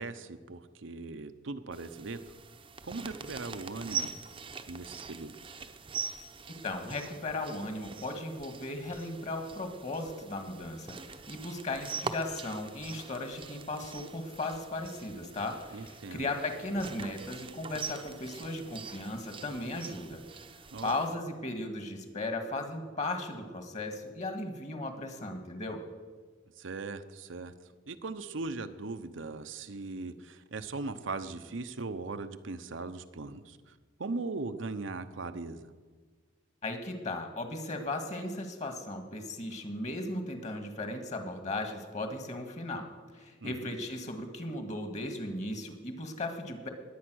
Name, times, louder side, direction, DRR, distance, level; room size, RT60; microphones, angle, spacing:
voice 1, 0.0-2.2 2.8-4.1 4.7-5.6 15.7-16.3 20.7-20.9 26.6-35.7 43.4-43.8, right 3 dB, 75° right, 9 dB, 0.8 m, -39 dB
sound 1, 1.7-21.1, right 5 dB, 25° right, 0.7 m, -43 dB
voice 2, 6.6-20.2 20.8-25.8 36.6-42.8 43.1-46.7, left 2 dB, 35° left, 6 dB, 1.8 m, -36 dB
20.5 x 8.7 x 6.3 m, 1.5 s
head